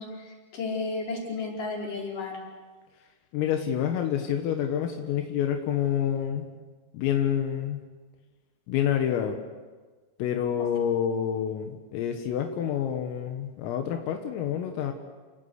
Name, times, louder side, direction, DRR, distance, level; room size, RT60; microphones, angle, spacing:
voice 1, 0.0-2.4 3.6-3.7, left 3 dB, 40° left, -2 dB, 6.2 m, -33 dB
voice 2, 3.3-6.5 6.9-7.8 8.7-9.4 10.2-14.9, left 9 dB, 85° left, 4 dB, 4.1 m, -28 dB
29.0 x 19.0 x 8.2 m, 1.3 s
omnidirectional pair, 5.9 m